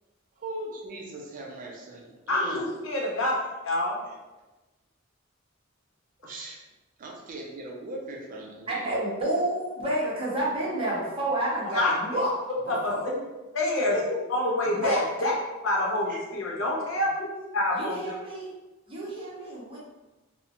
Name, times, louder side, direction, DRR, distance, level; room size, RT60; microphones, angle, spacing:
voice 1, 0.4-2.6 6.2-6.6 7.0-9.2 13.0-13.3 13.8-14.2 16.1-16.2, right 1 dB, 45° right, -1 dB, 0.4 m, -38 dB
voice 2, 2.3-3.3 3.6-4.0 11.7-11.9 12.7-12.9 13.5-13.9 14.3-15.3 15.6-17.3 17.5-18.1, left 2 dB, 80° left, -3 dB, 0.7 m, -27 dB
voice 3, 8.7-12.3 12.9-13.0 14.6-15.0 17.8-18.5 18.9-19.8, right 1 dB, 30° right, -6 dB, 0.8 m, -29 dB
2.8 x 2.1 x 2.5 m, 1.1 s
head